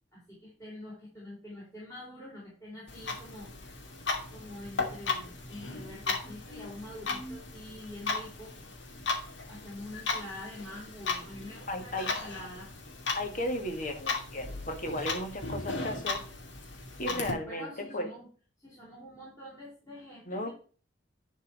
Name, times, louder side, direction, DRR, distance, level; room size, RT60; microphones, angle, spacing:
voice 1, 0.1-3.5 4.3-8.5 9.5-12.7 17.1-18.3 18.6-20.5, left 1 dB, 15° left, -6 dB, 4.2 m, -45 dB
Clock, 2.9-17.3, left 4 dB, 75° left, 2.4 m, -36 dB
voice 2, 11.7-12.2 13.1-16.3 17.0-18.1 20.3-20.5, left 1 dB, 45° left, 6 dB, 1.8 m, -35 dB
11.0 x 4.6 x 4.9 m, 0.40 s
head